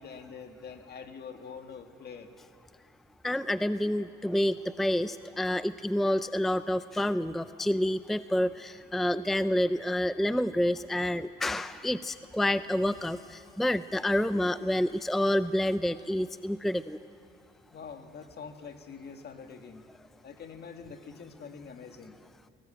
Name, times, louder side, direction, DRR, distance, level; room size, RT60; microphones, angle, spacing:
voice 1, 0.0-2.3 17.7-19.9 20.2-22.2, left 6 dB, 55° left, 6 dB, 1.9 m, -45 dB
voice 2, 3.2-17.0, left 1 dB, ahead, 13 dB, 0.4 m, -28 dB
19.5 x 18.0 x 8.7 m, 2.3 s
cardioid pair, 90°, 20 cm